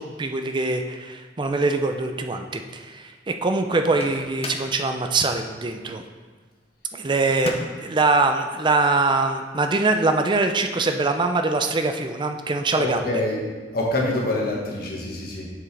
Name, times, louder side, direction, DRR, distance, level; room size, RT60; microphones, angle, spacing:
voice 1, 0.0-6.0 6.9-13.0, right 3 dB, 25° right, 6 dB, 0.5 m, -23 dB
Microwave oven, 3.7-4.8 7.3-7.9, left 2 dB, 35° left, 0.6 m, -35 dB
voice 2, 12.8-13.4 13.7-15.4, left 1 dB, 55° left, -2 dB, 1.4 m, -25 dB
7.2 x 6.1 x 3.3 m, 1.4 s
head